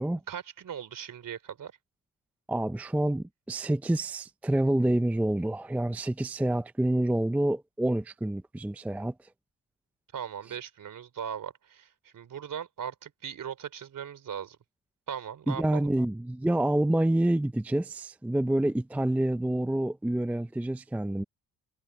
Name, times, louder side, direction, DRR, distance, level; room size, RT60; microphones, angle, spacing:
voice 1, 0.3-1.7 10.1-14.6 15.1-15.9, right 8 dB, 60° right, 3.3 m, -39 dB
voice 2, 2.5-9.1 15.5-21.2, right 1 dB, 5° right, 0.5 m, -27 dB
cardioid pair, 105°, 36 cm